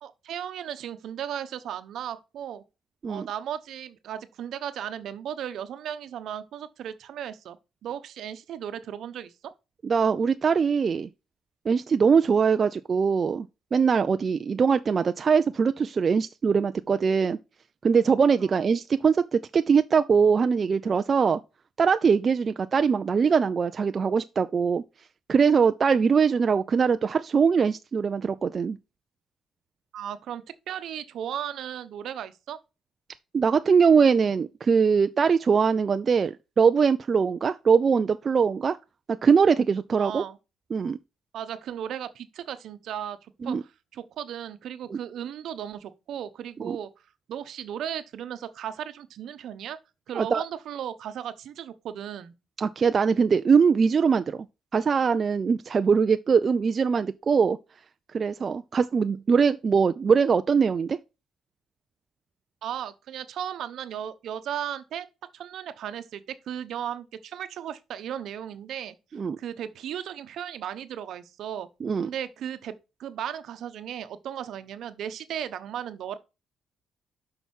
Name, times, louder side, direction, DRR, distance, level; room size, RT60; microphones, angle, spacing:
voice 1, 0.0-2.6 3.1-7.6 7.8-9.5 29.9-32.6 40.0-40.4 41.3-43.2 43.4-46.9 47.3-49.8 50.1-52.3 62.6-65.1 65.3-68.9 69.4-71.7 72.0-76.2, right 9 dB, 75° right, 0.9 m, -36 dB
voice 2, 9.8-11.1 11.7-13.5 13.7-17.4 17.8-21.4 21.8-24.8 25.3-28.8 33.3-38.8 39.2-40.2 40.7-41.0 43.4-43.6 44.9-45.0 46.6-46.8 50.1-50.4 52.6-54.5 54.7-57.6 58.1-61.0 69.1-69.4 71.8-72.1, right 6 dB, 40° right, 0.4 m, -22 dB
6.2 x 5.7 x 5.5 m
cardioid pair, 90°, 0 cm